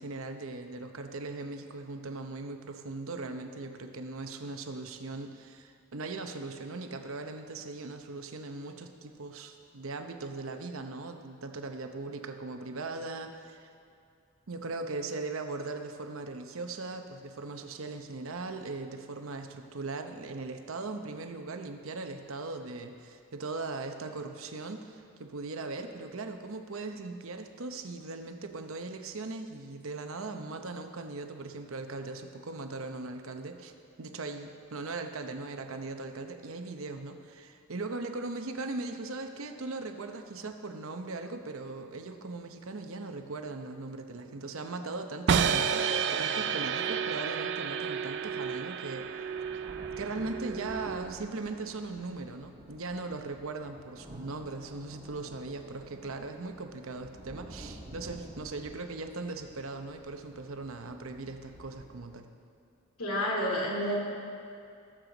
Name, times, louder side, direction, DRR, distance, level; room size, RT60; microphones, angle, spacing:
voice 1, 0.0-13.7 14.5-33.7 34.0-49.1 50.0-62.3, right 3 dB, 65° right, 6 dB, 0.8 m, -39 dB
sound 1, 45.3-51.3, right 7 dB, 50° right, 0.4 m, -31 dB
sound 2, 46.4-46.5 47.7-47.8 48.2-62.2, right 1 dB, 25° right, 1.2 m, -51 dB
voice 2, 63.0-64.0, equal, 80° left, -2 dB, 2.5 m, -29 dB
17.5 x 7.7 x 4.0 m, 2.5 s
head